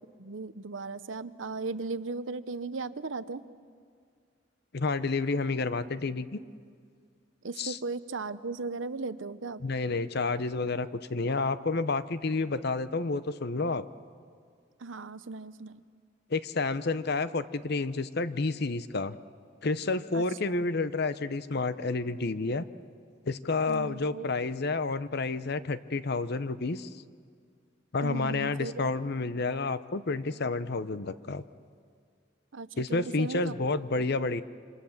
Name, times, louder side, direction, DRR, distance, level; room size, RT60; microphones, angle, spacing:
voice 1, 0.2-3.4 7.4-9.6 14.8-15.8 20.1-20.6 23.7-24.3 28.0-28.8 32.5-33.7 33.9-34.0, right 3 dB, 70° right, 13 dB, 0.8 m, -37 dB
voice 2, 4.7-6.4 7.6-7.8 9.6-13.8 16.3-19.2 19.6-22.6 23.3-26.9 27.9-31.4 32.8-34.4, left 3 dB, 55° left, 13 dB, 0.8 m, -30 dB
27.0 x 26.0 x 7.3 m, 2.1 s
head